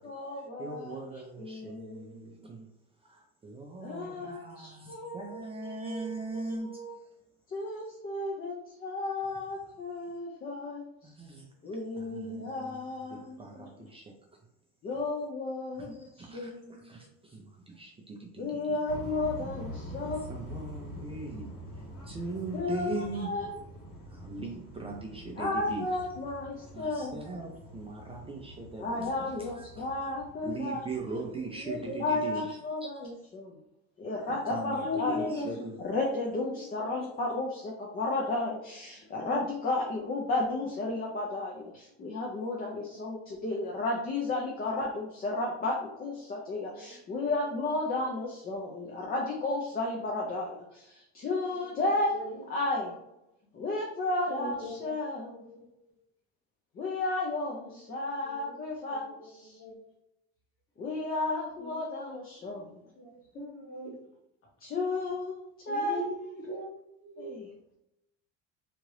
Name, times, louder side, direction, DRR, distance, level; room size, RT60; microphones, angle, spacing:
voice 1, 0.0-2.4 3.8-7.0 7.5-11.1 11.6-13.9 14.8-16.8 18.4-20.2 22.5-23.5 25.4-27.3 28.8-30.8 32.0-33.6 34.0-35.2 35.9-52.2 52.5-52.9 53.5-55.3 56.7-59.6 60.8-62.8 64.6-66.0 67.2-67.4, left 2 dB, 30° left, -1 dB, 0.5 m, -33 dB
voice 2, 0.6-2.7 3.0-6.7 11.0-11.5 12.0-12.8 13.1-14.0 16.0-18.8 19.9-20.0 20.3-21.5 22.1-23.3 24.1-25.9 26.7-29.3 29.6-29.8 30.4-31.8 32.1-32.4 32.8-32.9 34.5-35.5, right 3 dB, 20° right, 0 dB, 0.5 m, -40 dB
sound 1, 18.9-32.1, equal, 75° left, 1.5 m, -46 dB
voice 3, 31.4-32.0 34.7-35.7 36.3-36.6 38.5-38.6 39.0-39.4 40.1-40.5 40.8-41.1 42.6-43.4 46.0-46.3 46.7-47.7 48.6-48.9 49.7-49.9 51.2-52.4 52.8-52.9 53.9-54.0 54.3-55.9 57.6-58.6 58.9-59.9 61.0-61.1 61.6-61.8 62.4-64.1 65.7-67.3, left 2 dB, 45° left, -2 dB, 1.2 m, -42 dB
2.9 x 2.4 x 3.1 m, 0.84 s
cardioid pair, 125°, 31 cm